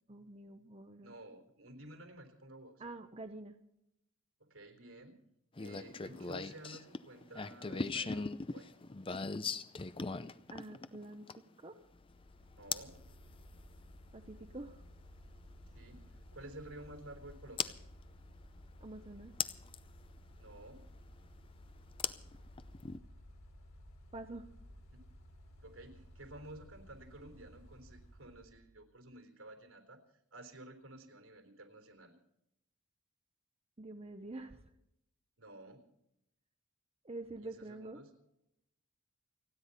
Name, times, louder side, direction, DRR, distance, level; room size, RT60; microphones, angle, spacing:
voice 1, 0.1-1.1 2.8-3.6 10.5-11.8 14.1-14.8 18.8-19.3 24.1-24.5 33.8-34.6 37.0-38.0, right 2 dB, 30° right, 7 dB, 0.8 m, -47 dB
voice 2, 1.0-2.8 4.4-5.2 5.6-8.7 12.6-13.0 15.7-17.7 20.4-20.9 24.9-25.0 25.6-30.0 30.3-32.1 35.4-35.8 37.4-38.1, right 1 dB, 80° right, 5 dB, 3.7 m, -52 dB
sound 1, 5.6-11.6 12.7-13.0 14.9-15.0 17.6-17.7 19.4-19.8 22.0-23.0, left 5 dB, 25° left, 0.5 m, -38 dB
Mechanical fan, 11.8-28.7, equal, 80° left, 3.3 m, -56 dB
30.0 x 10.0 x 4.1 m, 0.82 s
head